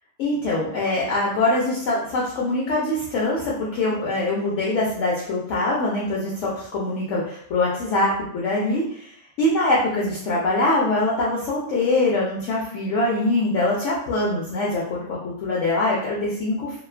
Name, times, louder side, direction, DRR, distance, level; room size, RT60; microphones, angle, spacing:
voice 1, 0.2-16.8, left 2 dB, 70° left, -5 dB, 0.8 m, -23 dB
2.4 x 2.2 x 2.3 m, 0.67 s
omnidirectional pair, 1.5 m